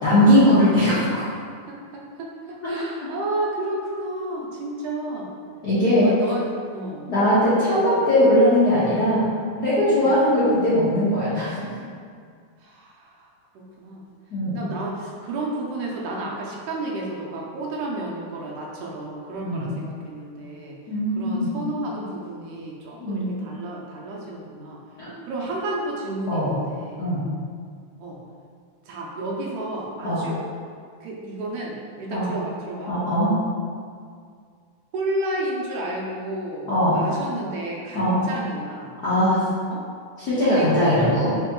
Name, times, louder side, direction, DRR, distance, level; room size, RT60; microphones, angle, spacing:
voice 1, 0.0-0.9 5.6-6.1 7.1-9.3 9.5-11.7 14.3-14.6 19.3-19.7 20.9-21.5 23.0-23.4 26.3-26.5 27.0-27.2 30.0-30.2 32.1-32.3 32.9-33.3 36.7-37.0 37.9-38.2 39.0-39.4 40.2-41.3, equal, 70° left, -13 dB, 0.9 m, -20 dB
voice 2, 1.7-5.3 6.0-7.1 7.7-8.1 10.0-10.1 12.6-13.3 13.6-14.0 14.5-20.8 21.2-24.8 25.2-27.1 28.0-28.2 28.9-30.4 31.0-32.9 34.9-38.9 39.7-39.8 40.5-41.0, right 2 dB, 80° right, -2 dB, 2.2 m, -31 dB
5.0 x 2.9 x 3.6 m, 2.1 s
omnidirectional pair, 3.6 m